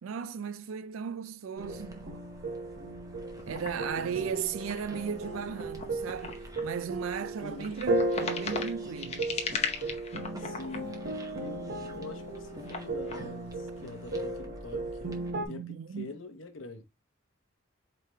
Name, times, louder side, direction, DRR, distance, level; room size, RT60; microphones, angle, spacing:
voice 1, 0.0-2.2 3.5-9.3 15.5-16.1, right 7 dB, 80° right, 0.4 m, -36 dB
sound 1, 1.6-15.3, equal, 15° right, 0.9 m, -51 dB
sound 2, 1.6-15.5, right 2 dB, 50° right, 0.8 m, -36 dB
sound 3, 3.4-11.6 11.9-13.2, left 5 dB, 30° left, 0.8 m, -39 dB
voice 2, 7.4-7.8 10.4-10.9 11.4-15.1 15.4-16.8, left 3 dB, 70° left, 1.0 m, -44 dB
4.7 x 3.2 x 3.3 m
head